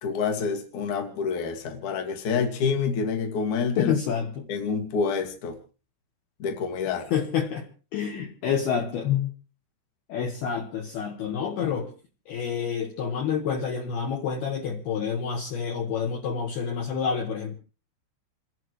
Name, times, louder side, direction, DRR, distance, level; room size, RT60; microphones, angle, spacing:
voice 1, 0.0-3.9 4.5-5.6 6.4-7.0, left 5 dB, 45° left, 2.9 m, -27 dB
voice 2, 3.8-4.5 7.1-9.3 10.1-11.9 12.3-17.5, left 7 dB, 65° left, 3.0 m, -28 dB
29.5 x 11.0 x 3.1 m
omnidirectional pair, 5.8 m